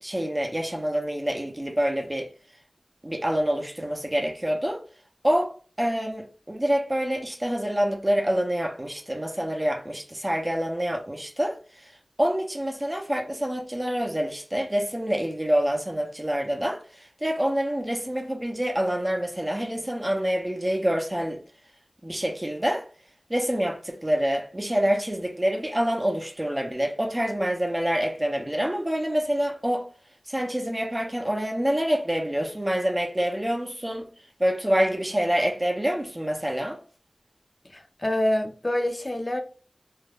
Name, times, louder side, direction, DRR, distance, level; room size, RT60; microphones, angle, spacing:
voice 1, 0.0-2.3 3.0-4.8 5.2-21.4 22.0-22.9 23.3-29.9 30.3-34.1 34.4-36.8, equal, 25° right, 0.5 m, -26 dB
voice 2, 37.7-39.4, left 1 dB, 35° left, 0.5 m, -26 dB
2.3 x 2.1 x 3.2 m
wide cardioid pair, 55°, 0 cm